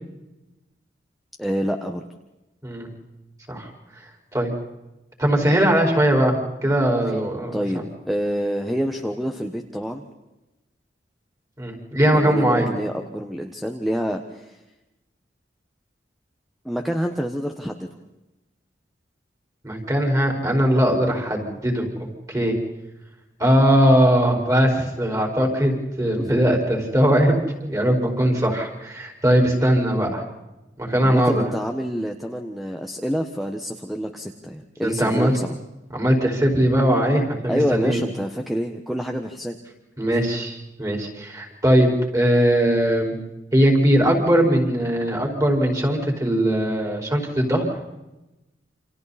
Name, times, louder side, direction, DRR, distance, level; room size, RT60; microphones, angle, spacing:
voice 1, 1.4-2.0 7.5-10.0 12.0-14.6 16.6-17.9 26.2-26.3 31.0-35.6 37.5-39.6, equal, ahead, 4 dB, 1.3 m, -27 dB
voice 2, 5.2-7.6 11.6-12.7 19.6-21.9 22.3-22.6 23.4-30.2 30.8-31.5 34.8-35.3 35.9-38.0 40.0-43.1 43.5-47.7, equal, 20° right, 1 dB, 5.1 m, -20 dB
29.0 x 27.5 x 4.3 m, 0.99 s
head